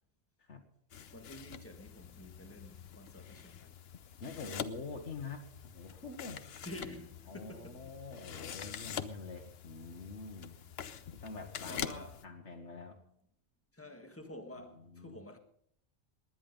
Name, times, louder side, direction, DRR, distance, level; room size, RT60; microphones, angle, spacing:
sound 1, 0.9-12.3, left 8 dB, 60° left, 1.0 m, -45 dB
voice 1, 1.1-3.8 6.6-7.9 11.7-12.2 13.7-15.4, left 1 dB, 10° left, 1.6 m, -49 dB
voice 2, 4.2-6.4 7.3-10.5 11.1-13.0 14.8-15.2, left 4 dB, 80° left, 1.8 m, -46 dB
19.5 x 10.5 x 5.3 m
omnidirectional pair, 1.2 m